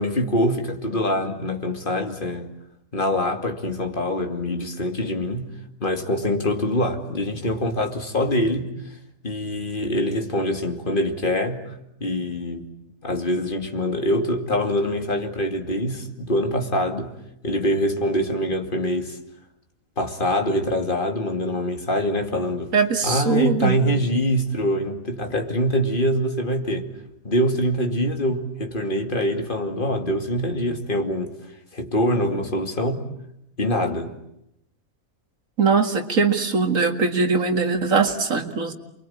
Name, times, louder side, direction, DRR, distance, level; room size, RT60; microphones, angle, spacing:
voice 1, 0.0-2.5 2.9-5.4 5.8-8.7 9.2-11.7 12.0-12.7 13.0-17.1 17.4-19.2 20.0-22.7 23.0-26.9 27.2-31.3 31.7-33.0 33.6-34.1, left 1 dB, 35° left, 2.7 m, -24 dB
voice 2, 22.7-23.8 35.6-38.7, right 5 dB, 65° right, 2.4 m, -21 dB
29.0 x 23.0 x 8.7 m
omnidirectional pair, 1.5 m